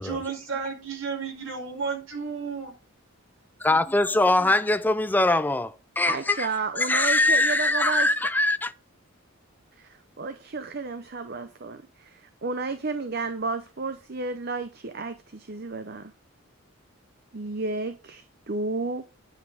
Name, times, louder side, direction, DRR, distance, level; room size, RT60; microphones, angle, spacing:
voice 1, 0.0-2.7, right 5 dB, 65° right, 4.9 m, -32 dB
voice 2, 3.6-6.5 6.8-8.7, left 2 dB, 10° left, 0.4 m, -22 dB
voice 3, 6.1-8.1 9.8-16.1 17.3-19.0, right 3 dB, 45° right, 0.7 m, -32 dB
10.0 x 5.6 x 4.8 m
head